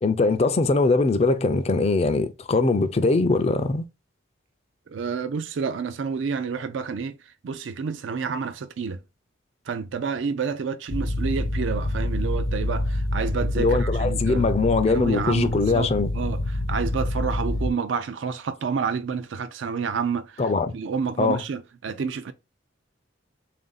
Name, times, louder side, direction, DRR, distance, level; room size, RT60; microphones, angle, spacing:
voice 1, 0.0-3.9 13.6-16.1 20.4-20.7 21.2-21.4, left 3 dB, 30° left, 0.4 m, -22 dB
voice 2, 4.9-7.2 7.4-9.0 9.7-14.5 14.9-22.3, right 5 dB, 70° right, 0.4 m, -29 dB
sound 1, 10.9-17.7, left 1 dB, 75° left, 0.7 m, -27 dB
3.5 x 2.6 x 3.9 m
head